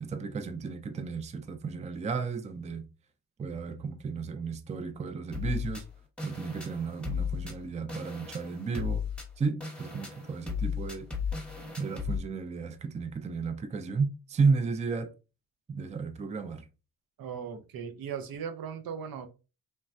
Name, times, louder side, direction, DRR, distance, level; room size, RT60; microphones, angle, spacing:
voice 1, 0.0-2.8 3.4-5.8 6.2-9.0 9.4-11.1 11.8-15.1 15.7-16.6, right 4 dB, 20° right, 0.3 m, -33 dB
sound 1, 5.3-12.2, left 6 dB, 5° left, 0.9 m, -35 dB
voice 2, 17.2-19.3, right 7 dB, 75° right, 0.6 m, -38 dB
3.2 x 2.1 x 2.5 m
cardioid pair, 85°, 36 cm